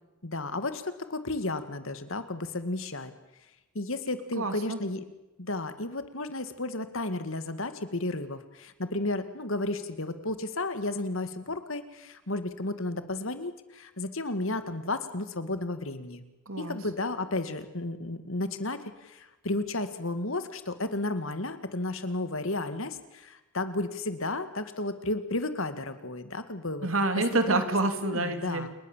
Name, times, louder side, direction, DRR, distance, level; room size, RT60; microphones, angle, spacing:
voice 1, 0.2-3.1 3.7-5.0 5.4-16.2 16.6-26.9 27.5-27.6 28.0-28.7, left 2 dB, 65° left, 10 dB, 2.2 m, -33 dB
voice 2, 4.4-4.8 16.5-16.8 26.8-28.7, right 2 dB, 65° right, 8 dB, 3.1 m, -27 dB
29.0 x 21.0 x 7.5 m, 1.0 s
head